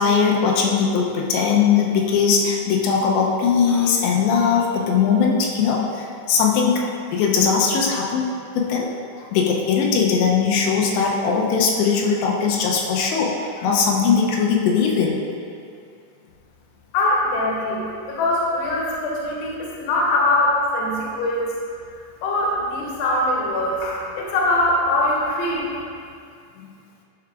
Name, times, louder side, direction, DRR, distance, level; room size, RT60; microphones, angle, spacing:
voice 1, 0.0-8.9 9.3-15.2 26.6-26.7, left 6 dB, 90° left, -1 dB, 2.9 m, -20 dB
voice 2, 16.9-21.5 22.2-25.8, left 1 dB, 70° left, -4 dB, 2.6 m, -22 dB
10.5 x 4.7 x 2.4 m, 2.4 s
omnidirectional pair, 5.0 m